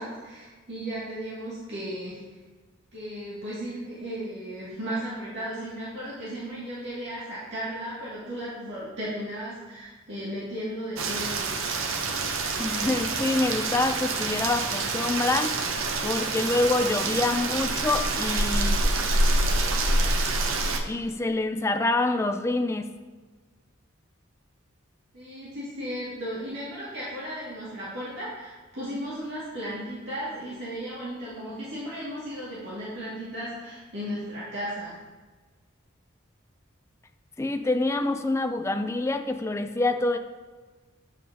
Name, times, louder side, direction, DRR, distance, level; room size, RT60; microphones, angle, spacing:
voice 1, 0.0-2.2 2.9-11.5 25.1-34.9, equal, 60° right, -9 dB, 2.2 m, -35 dB
Rain, 11.0-20.8, right 2 dB, 75° right, 0.8 m, -26 dB
voice 2, 12.6-15.6 16.0-18.7 20.9-22.9 37.4-40.2, left 2 dB, 15° left, 7 dB, 0.3 m, -26 dB
8.1 x 7.4 x 2.8 m, 1.3 s
head